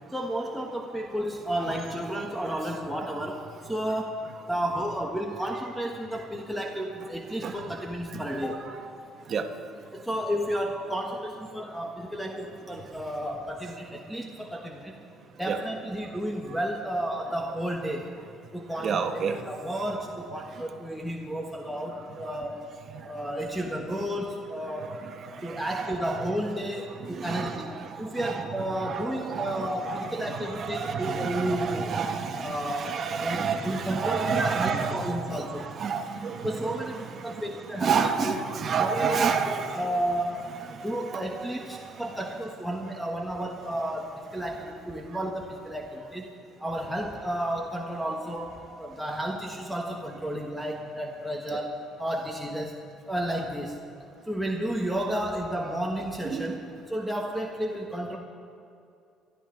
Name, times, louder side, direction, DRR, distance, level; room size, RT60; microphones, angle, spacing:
voice 1, 0.1-4.1 4.4-8.6 9.9-15.0 15.4-18.1 18.5-22.7 23.0-24.9 25.4-27.7 28.0-32.0 32.4-35.7 36.4-38.0 38.2-38.4 38.8-40.6 40.8-46.3 46.6-51.7 52.0-52.8 53.1-53.8 54.3-56.6 56.9-58.2, right 1 dB, ahead, -1 dB, 1.3 m, -32 dB
voice 2, 18.8-19.4 25.7-25.9 27.2-27.9 28.2-28.5 28.8-36.7 37.8-39.8 41.1-41.4 51.5-51.6 56.3-56.6, right 6 dB, 45° right, 5 dB, 1.3 m, -29 dB
23.0 x 12.5 x 3.9 m, 2.5 s
cardioid pair, 105°, 0 cm